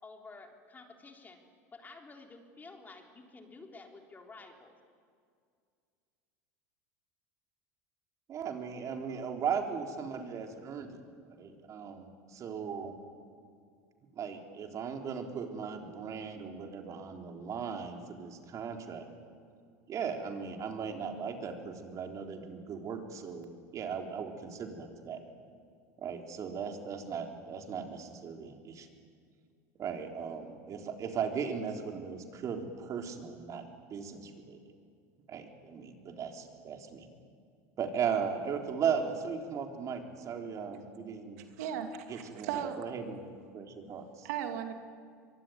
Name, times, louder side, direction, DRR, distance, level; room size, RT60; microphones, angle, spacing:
voice 1, 0.0-1.4 1.7-4.8, left 3 dB, 20° left, 3 dB, 3.8 m, -51 dB
voice 2, 8.3-11.0 11.3-12.9 14.2-19.1 19.9-25.2 26.0-28.9 29.8-33.6 33.9-34.6 35.3-37.1 37.8-41.4 42.1-42.5 42.8-44.3, right 6 dB, 40° right, 3 dB, 3.9 m, -37 dB
voice 3, 41.4-42.8 44.2-44.7, right 9 dB, 75° right, 6 dB, 2.6 m, -36 dB
24.0 x 23.5 x 9.7 m, 2.2 s
supercardioid pair, 105°, 8 cm